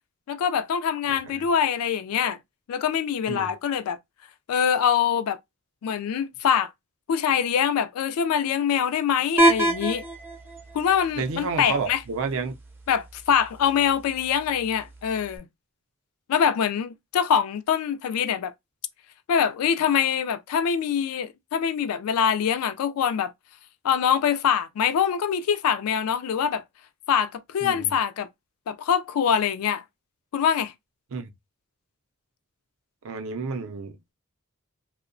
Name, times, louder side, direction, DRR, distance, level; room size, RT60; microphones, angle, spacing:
voice 1, 0.3-2.4 2.7-4.0 4.5-5.4 5.8-6.7 7.1-10.0 10.7-12.0 12.9-15.5 16.3-18.5 19.3-23.3 23.8-26.6 27.1-28.3 28.7-29.8 30.3-30.7, left 8 dB, 85° left, 0.3 m, -24 dB
voice 2, 1.1-1.4 3.3-3.5 11.2-12.6 27.6-27.9 31.1-31.3 33.0-34.1, right 4 dB, 65° right, 0.4 m, -31 dB
sound 1, 9.4-15.4, right 1 dB, 10° right, 0.4 m, -28 dB
2.7 x 2.0 x 2.5 m
head